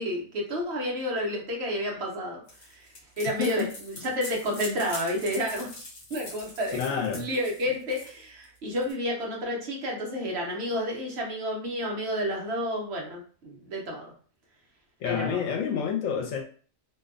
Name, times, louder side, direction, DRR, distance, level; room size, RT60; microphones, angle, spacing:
voice 1, 0.0-2.4 2.7-2.9 3.2-3.6 4.0-5.7 6.1-6.8 7.1-14.1 15.0-15.5, equal, 60° right, 0 dB, 0.9 m, -30 dB
sound 1, 2.5-8.9, left 2 dB, 55° left, 0.9 m, -43 dB
voice 2, 3.4-3.7 4.0-4.1 6.7-7.3 15.0-16.4, left 7 dB, 80° left, 2 dB, 1.0 m, -29 dB
2.6 x 2.2 x 2.5 m, 0.41 s
omnidirectional pair, 1.4 m